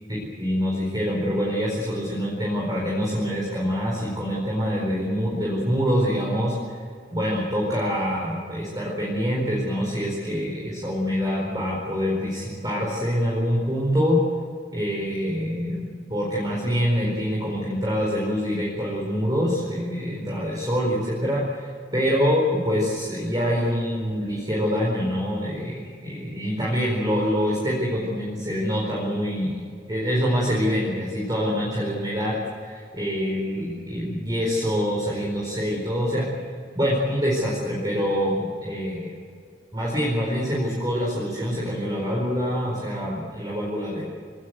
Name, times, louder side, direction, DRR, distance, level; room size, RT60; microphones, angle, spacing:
voice 1, 0.4-6.8 7.1-14.2 14.7-29.6 29.9-36.3 36.7-39.1 39.7-44.1, equal, 20° right, -3 dB, 4.6 m, -25 dB
24.5 x 19.0 x 8.1 m, 2.2 s
head